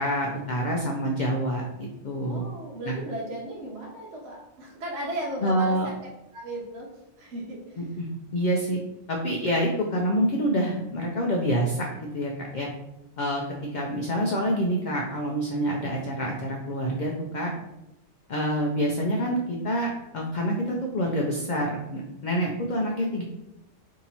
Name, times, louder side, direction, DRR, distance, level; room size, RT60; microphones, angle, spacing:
voice 1, 0.0-2.4 2.8-2.9 5.4-5.9 7.8-8.8 9.1-12.7 13.2-13.4 13.7-17.5 18.3-23.2, equal, 60° left, 0 dB, 0.5 m, -27 dB
voice 2, 2.2-5.9 6.3-6.9 7.2-7.8, right 1 dB, 70° right, -3 dB, 1.0 m, -35 dB
2.8 x 2.7 x 4.1 m, 0.91 s
omnidirectional pair, 1.2 m